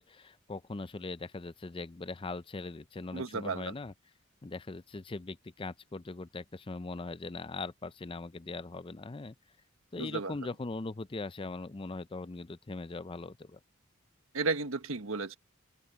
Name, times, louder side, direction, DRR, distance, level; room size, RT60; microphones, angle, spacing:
voice 1, 0.0-3.9 4.4-9.4 9.9-13.6, left 3 dB, 25° left, 0.5 m, -40 dB
voice 2, 3.1-3.7 10.0-10.3 14.3-15.4, right 4 dB, 80° right, 1.3 m, -33 dB
open air
head